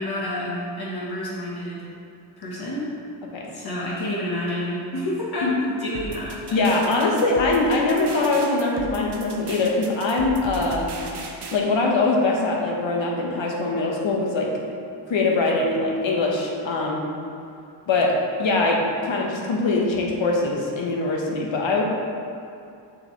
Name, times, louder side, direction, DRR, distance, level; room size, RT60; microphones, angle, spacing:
voice 1, 0.0-1.9 2.4-2.9 3.5-6.6, left 1 dB, 55° left, -6 dB, 1.2 m, -29 dB
sound 1, 5.9-11.6, right 3 dB, 60° right, 0.8 m, -36 dB
voice 2, 6.5-10.9 11.5-14.5 15.1-17.0 17.9-21.8, left 3 dB, 75° left, -1 dB, 1.2 m, -22 dB
7.1 x 6.4 x 3.2 m, 2.5 s
wide cardioid pair, 165°, 46 cm